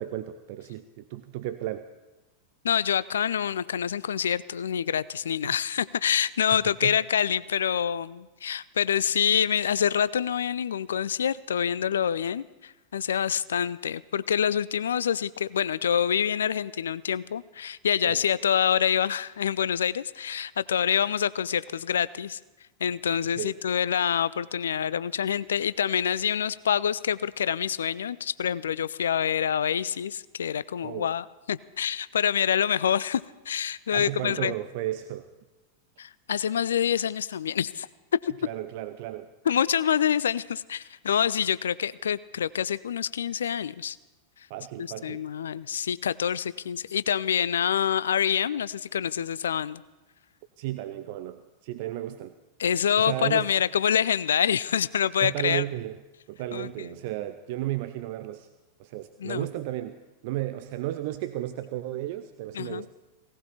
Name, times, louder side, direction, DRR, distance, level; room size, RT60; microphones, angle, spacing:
voice 1, 0.0-1.9 5.4-5.5 6.8-7.0 18.0-18.2 23.4-23.6 30.8-31.1 33.9-35.3 38.4-39.3 44.5-45.2 50.6-52.3 53.0-53.5 55.2-56.0 56.3-58.5 58.8-62.9, right 14 dB, 50° right, 10 dB, 0.6 m, -34 dB
voice 2, 2.6-22.4 22.8-34.5 36.0-37.9 38.2-38.3 39.5-44.0 44.8-49.8 52.6-55.6 56.5-56.9 59.2-59.5 62.5-62.8, left 8 dB, 65° left, 19 dB, 0.4 m, -26 dB
17.5 x 15.5 x 4.3 m, 1.1 s
figure-of-eight pair, 90°, 0 cm